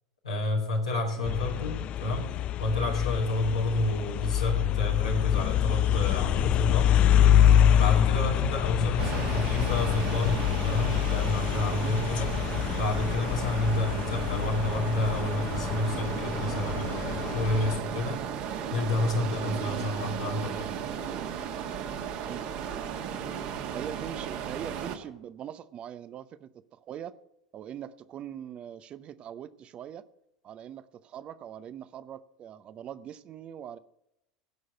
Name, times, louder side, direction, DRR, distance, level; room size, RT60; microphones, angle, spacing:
voice 1, 0.2-2.3 2.6-6.9 7.7-12.3 12.8-18.2 18.7-20.7, left 2 dB, 80° left, -3 dB, 2.1 m, -30 dB
sound 1, 1.2-17.8, left 10 dB, 40° left, 0.5 m, -26 dB
sound 2, 9.0-25.0, right 8 dB, 50° right, 1.7 m, -35 dB
voice 2, 23.7-27.1 27.5-30.1 30.4-33.8, right 9 dB, 35° right, 15 dB, 0.7 m, -42 dB
17.0 x 6.4 x 8.0 m, 0.84 s
figure-of-eight pair, 75°, 3 cm